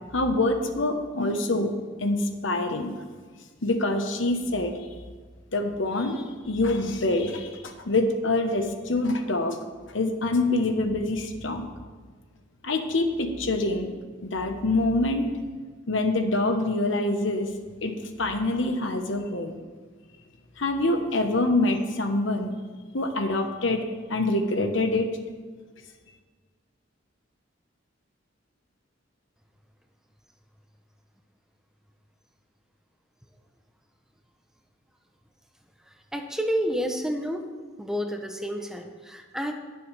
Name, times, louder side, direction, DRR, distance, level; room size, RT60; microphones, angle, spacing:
voice 1, 0.1-1.7 2.0-2.9 3.6-4.7 5.5-9.6 9.9-11.7 12.6-13.9 14.2-15.2 15.9-17.5 17.8-19.6 20.6-22.5 22.9-23.8 24.1-25.1, left 2 dB, 70° left, 5 dB, 1.1 m, -25 dB
voice 2, 35.9-37.4 37.8-39.5, equal, 5° right, 4 dB, 0.7 m, -30 dB
20.0 x 6.9 x 3.4 m, 1.5 s
head